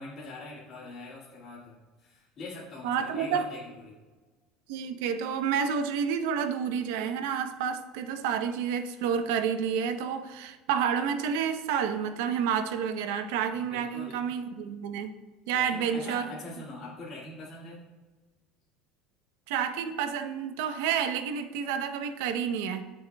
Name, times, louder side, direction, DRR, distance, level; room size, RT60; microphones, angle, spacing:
voice 1, 0.0-4.0 13.5-14.2 15.5-17.8, left 2 dB, 40° left, -7 dB, 2.2 m, -43 dB
voice 2, 2.8-3.5 4.7-15.2 15.5-16.3 19.5-22.8, right 7 dB, 85° right, 8 dB, 0.8 m, -29 dB
18.5 x 6.3 x 2.3 m, 1.3 s
cardioid pair, 145°, 0 cm